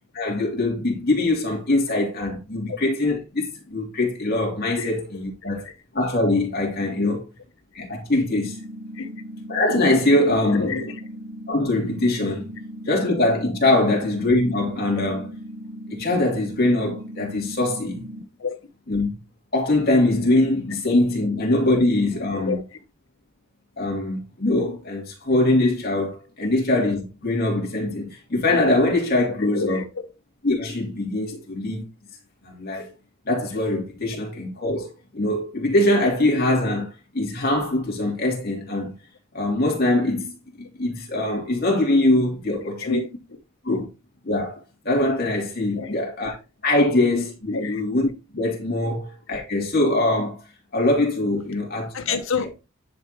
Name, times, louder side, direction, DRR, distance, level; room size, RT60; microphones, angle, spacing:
voice 1, 0.1-5.7 5.9-7.2 7.7-8.6 9.5-10.7 11.5-12.4 12.9-15.3 15.9-18.0 18.9-19.1 19.5-22.6 23.8-29.8 30.4-31.8 32.4-32.9 33.2-34.9 35.1-38.9 39.3-43.0 43.6-43.9 44.2-44.6 44.8-46.3 46.6-50.4 50.7-52.2, left 2 dB, 45° left, 2.8 m, -22 dB
voice 2, 5.4-5.7 6.9-7.2 8.9-9.1 10.4-11.0 12.9-13.0 13.8-13.9 18.4-18.6 21.2-21.3 22.3-22.8 29.4-30.1 31.3-31.4 42.5-43.4 45.7-46.3 47.5-47.8 48.8-48.9 51.9-52.6, left 4 dB, 60° left, 0.7 m, -30 dB
sound 1, 8.2-18.2, equal, 30° right, 1.1 m, -38 dB
10.5 x 4.7 x 3.0 m
head